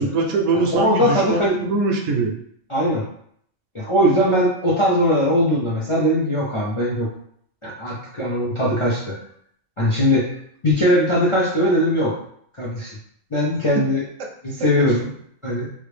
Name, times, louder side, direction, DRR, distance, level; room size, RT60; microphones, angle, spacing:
voice 1, 0.0-2.3 14.8-14.9, right 3 dB, 70° right, 1 dB, 0.9 m, -22 dB
voice 2, 0.5-1.6 2.7-3.0 3.7-7.1 7.6-9.2 9.8-10.4 10.6-12.2 12.6-13.0 13.3-14.0 14.4-15.1 15.4-15.7, equal, 35° left, -5 dB, 0.5 m, -20 dB
3.2 x 2.5 x 3.2 m, 0.66 s
omnidirectional pair, 1.4 m